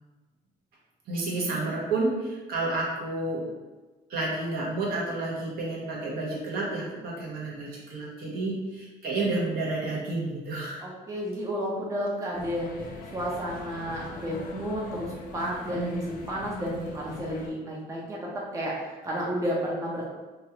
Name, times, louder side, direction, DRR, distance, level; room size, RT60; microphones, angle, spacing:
voice 1, 1.1-3.5 4.1-10.8 15.7-16.0, right 2 dB, 60° right, -4 dB, 1.0 m, -30 dB
voice 2, 10.8-12.7 13.1-20.1, equal, 20° right, -4 dB, 0.6 m, -32 dB
sound 1, 12.3-17.5, left 2 dB, 55° left, 0.5 m, -42 dB
3.0 x 2.4 x 2.9 m, 1.2 s
cardioid pair, 110°, 17 cm